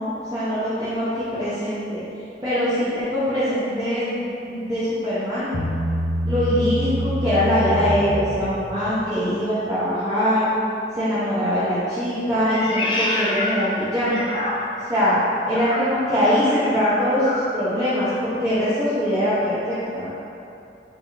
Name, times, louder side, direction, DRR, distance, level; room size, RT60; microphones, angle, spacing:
voice 1, 0.0-2.0 2.4-5.5 6.2-10.5 11.0-14.3 14.9-15.2 15.5-20.1, equal, 20° right, -12 dB, 0.6 m, -22 dB
Bass guitar, 5.5-8.9, equal, 65° left, 0.7 m, -26 dB
Meow, 12.4-14.9 15.5-17.6, left 1 dB, 30° left, 0.3 m, -28 dB
3.0 x 2.7 x 3.5 m, 2.6 s
head